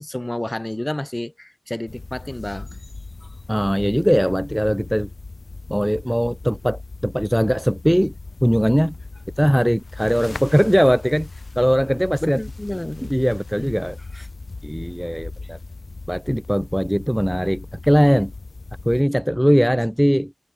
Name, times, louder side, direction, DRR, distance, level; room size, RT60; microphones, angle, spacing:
voice 1, 0.0-2.7 3.2-3.3 12.2-13.1 13.6-13.7, left 1 dB, 25° left, 2.3 m, -30 dB
sound 1, 1.9-19.0, left 3 dB, 85° left, 2.7 m, -38 dB
voice 2, 3.5-5.1 5.7-8.1 8.4-8.9 9.4-11.3 11.6-12.4 13.1-14.3 14.6-15.6 16.1-18.3 18.9-20.3, equal, ahead, 0.5 m, -20 dB
wide cardioid pair, 40°, 0 cm